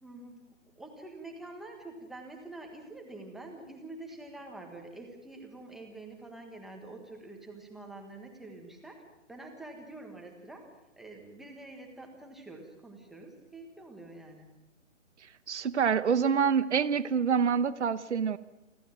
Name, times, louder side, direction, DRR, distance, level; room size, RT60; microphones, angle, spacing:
voice 1, 0.0-9.0 9.3-10.7 11.0-14.5, right 2 dB, ahead, 2 dB, 1.5 m, -46 dB
voice 2, 15.5-18.4, right 7 dB, 65° right, 15 dB, 1.0 m, -26 dB
28.0 x 12.0 x 9.0 m, 0.99 s
hypercardioid pair, 160°, 37 cm